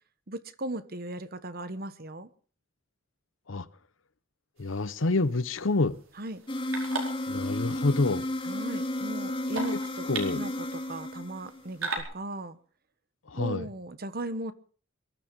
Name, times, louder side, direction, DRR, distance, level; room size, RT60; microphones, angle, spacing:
voice 1, 0.3-2.3 6.2-6.4 8.4-10.1 10.3-12.6 13.4-14.5, right 2 dB, 50° right, 1.3 m, -37 dB
voice 2, 4.6-6.0 7.3-8.3 10.1-10.4 13.3-13.7, left 3 dB, 70° left, 0.9 m, -27 dB
sound 1, 4.6-12.0, right 4 dB, 80° right, 4.8 m, -41 dB
sound 2, 6.5-11.8, left 1 dB, 25° left, 2.1 m, -33 dB
22.5 x 11.5 x 5.4 m
head